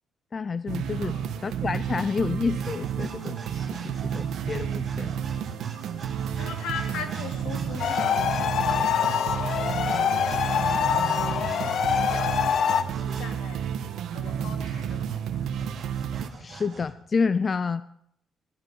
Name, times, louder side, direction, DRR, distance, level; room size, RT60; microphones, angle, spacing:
voice 1, 0.3-5.1 16.4-17.8, left 5 dB, 35° left, 15 dB, 0.5 m, -29 dB
sound 1, 0.7-16.3, right 8 dB, 80° right, 1.3 m, -31 dB
sound 2, 2.5-13.3 14.3-16.9, right 3 dB, 35° right, 5.1 m, -44 dB
voice 2, 6.3-9.4 9.8-10.4 11.0-11.4 11.8-13.7 14.1-15.6, left 6 dB, 85° left, 1 dB, 3.3 m, -40 dB
Emergency Siren, 7.8-12.8, left 8 dB, 65° left, 1.0 m, -25 dB
19.5 x 12.0 x 5.5 m, 0.72 s
cardioid pair, 90°, 0 cm